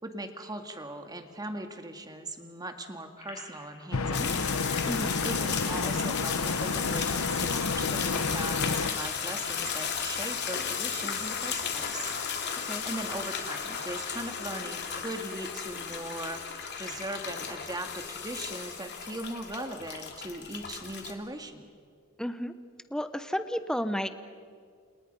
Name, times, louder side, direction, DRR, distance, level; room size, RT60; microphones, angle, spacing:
voice 1, 0.0-4.5 5.2-12.1 12.8-16.4 16.8-21.7, right 1 dB, 20° right, 6 dB, 2.0 m, -39 dB
sound 1, 3.2-7.1 7.3-7.4 7.7-14.1, left 3 dB, 30° left, 5.9 m, -49 dB
sound 2, 3.9-8.9, left 3 dB, 80° left, 1.0 m, -30 dB
sound 3, 4.1-21.1, left 7 dB, 50° left, 3.1 m, -35 dB
voice 2, 4.8-5.1 12.6-12.8 22.2-22.5 22.9-24.1, equal, 5° left, 10 dB, 0.9 m, -32 dB
30.0 x 28.5 x 5.5 m, 2.1 s
head